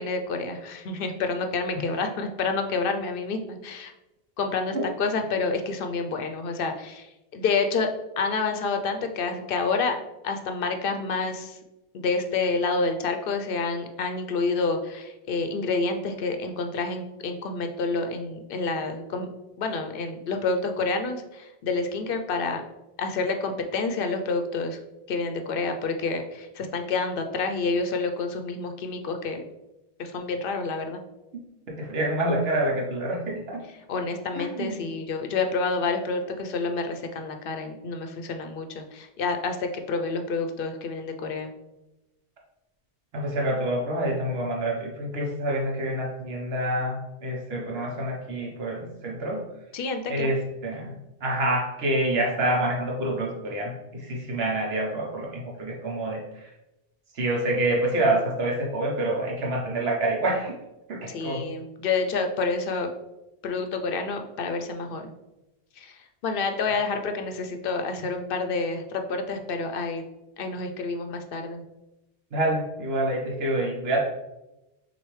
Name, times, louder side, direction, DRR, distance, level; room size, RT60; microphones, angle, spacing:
voice 1, 0.0-3.9 4.4-10.0 10.2-11.6 11.9-19.3 19.6-22.6 23.0-24.8 25.1-29.4 30.0-31.0 33.9-41.5 49.7-50.3 61.1-62.9 63.4-65.1 65.8-70.0 70.4-71.6, left 4 dB, 65° left, 6 dB, 0.7 m, -28 dB
voice 2, 31.7-33.6 34.3-34.9 43.1-49.4 50.1-50.9 51.2-56.5 57.1-60.6 60.9-61.4 72.3-74.0, right 1 dB, 75° right, -2 dB, 1.1 m, -27 dB
6.2 x 2.6 x 3.1 m, 0.96 s
omnidirectional pair, 1.1 m